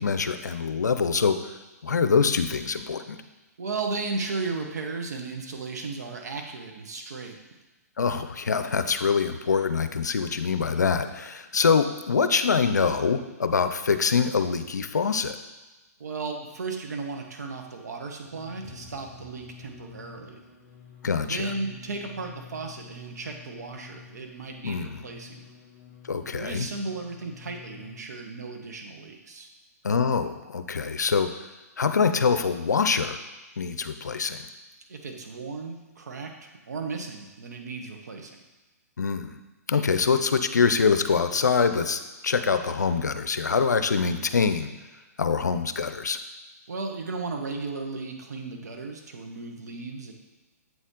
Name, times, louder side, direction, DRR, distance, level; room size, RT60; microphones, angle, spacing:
voice 1, 0.0-1.4 1.8-3.2 8.0-15.4 21.0-21.5 24.6-25.0 26.1-26.7 29.8-31.3 31.8-33.2 33.6-34.4 39.0-39.4 39.7-44.7 45.2-46.2, left 5 dB, 85° left, 9 dB, 0.5 m, -24 dB
voice 2, 3.6-7.4 16.0-20.4 21.3-25.5 26.3-29.5 34.9-38.4 46.7-50.1, right 3 dB, 75° right, 3 dB, 1.1 m, -35 dB
sound 1, 18.2-28.0, left 7 dB, 35° left, 1.6 m, -49 dB
7.8 x 4.2 x 3.8 m, 1.1 s
hypercardioid pair, 130°, 9 cm